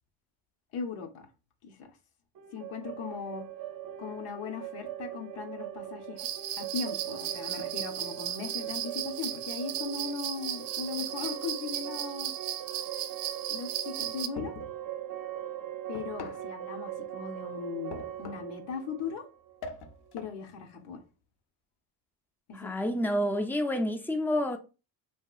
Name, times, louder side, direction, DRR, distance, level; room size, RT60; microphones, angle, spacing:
voice 1, 0.7-1.3 1.6-2.0 2.5-3.4 4.0-6.3 6.6-12.3 13.5-14.5 15.9-19.2 20.1-21.0 22.5-22.9, left 5 dB, 90° left, 0.8 m, -38 dB
sound 1, 2.3-20.1, right 11 dB, 45° right, 0.5 m, -41 dB
sound 2, 6.2-14.3, right 11 dB, 90° right, 0.6 m, -36 dB
sound 3, 14.4-14.8 15.9-16.5 17.9-18.6 19.6-20.4, left 4 dB, 55° left, 0.6 m, -42 dB
voice 2, 22.5-24.6, equal, 5° left, 0.3 m, -29 dB
2.8 x 2.8 x 2.3 m
cardioid pair, 85°, 48 cm